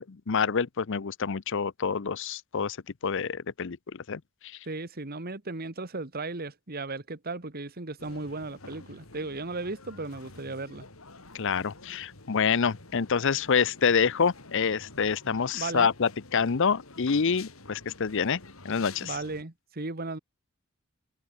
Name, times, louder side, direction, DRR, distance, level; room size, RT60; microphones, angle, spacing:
voice 1, 0.0-2.8 3.0-4.2 11.3-18.4 18.6-19.2, left 6 dB, 60° left, 0.7 m, -27 dB
voice 2, 4.6-10.9 15.5-15.9 19.0-20.2, right 3 dB, 45° right, 1.7 m, -36 dB
sound 1, 8.0-19.4, left 3 dB, 80° left, 4.5 m, -49 dB
head